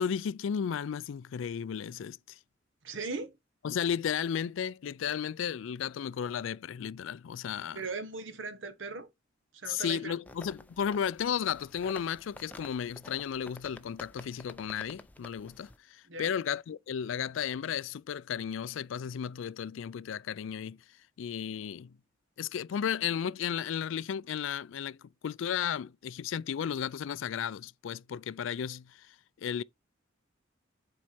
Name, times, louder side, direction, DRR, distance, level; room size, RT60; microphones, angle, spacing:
voice 1, 0.0-2.4 3.6-7.8 9.7-20.8 21.2-21.9 22.4-29.6, left 8 dB, 75° left, 0.3 m, -34 dB
voice 2, 2.8-3.4 7.7-9.1 9.5-10.2 16.1-16.3, right 4 dB, 75° right, 1.1 m, -38 dB
sound 1, 10.3-15.8, left 1 dB, 10° left, 0.4 m, -51 dB
7.4 x 4.6 x 4.2 m
head